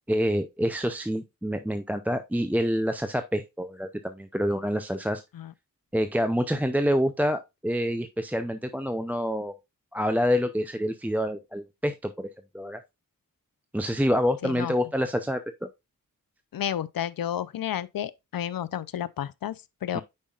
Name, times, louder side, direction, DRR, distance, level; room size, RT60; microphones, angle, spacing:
voice 1, 0.1-5.2 5.9-9.5 9.9-12.3 12.5-12.8 13.7-15.4 19.9-20.0, equal, 5° right, 0.5 m, -27 dB
voice 2, 14.4-14.7 16.5-20.0, left 10 dB, 80° left, 0.6 m, -31 dB
8.6 x 5.5 x 2.4 m
wide cardioid pair, 90°, 34 cm